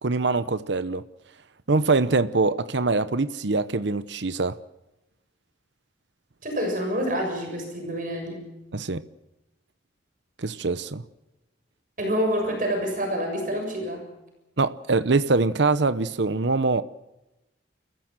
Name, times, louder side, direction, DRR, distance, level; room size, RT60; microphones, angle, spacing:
voice 1, 0.0-1.0 1.7-4.6 8.7-9.0 10.4-11.0 14.6-16.8, right 3 dB, 70° right, 0.9 m, -23 dB
voice 2, 6.4-8.5 12.0-14.0, equal, 45° right, 7.0 m, -27 dB
28.5 x 15.5 x 7.5 m
head